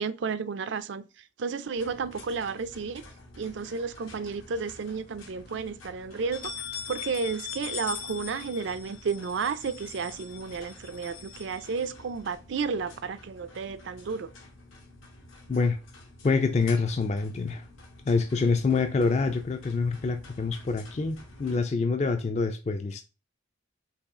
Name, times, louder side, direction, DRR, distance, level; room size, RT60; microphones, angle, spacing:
voice 1, 0.0-3.0 3.4-14.3, right 5 dB, 65° right, 0.4 m, -32 dB
sound 1, 1.8-21.6, left 2 dB, 85° left, 1.3 m, -50 dB
sound 2, 3.7-4.6 5.0-5.1 5.4-5.5 6.1-12.3, left 8 dB, 50° left, 0.8 m, -41 dB
voice 2, 16.2-17.6 18.1-23.0, left 4 dB, 35° left, 0.3 m, -26 dB
5.5 x 2.4 x 3.6 m
head